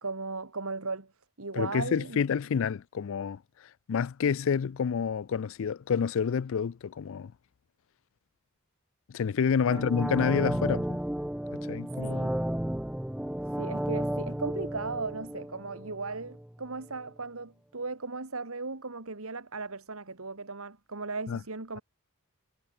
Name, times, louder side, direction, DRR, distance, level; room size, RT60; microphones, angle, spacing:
voice 1, 0.0-1.1 1.4-2.2 9.7-9.8 12.0-12.3 13.6-21.8, right 3 dB, 70° right, 1.9 m, -37 dB
voice 2, 1.5-3.4 3.9-7.3 9.1-11.0 11.7-12.2 21.3-21.4, left 6 dB, 60° left, 0.4 m, -28 dB
sound 1, 9.7-16.5 16.8-16.9, equal, 5° right, 0.4 m, -33 dB
head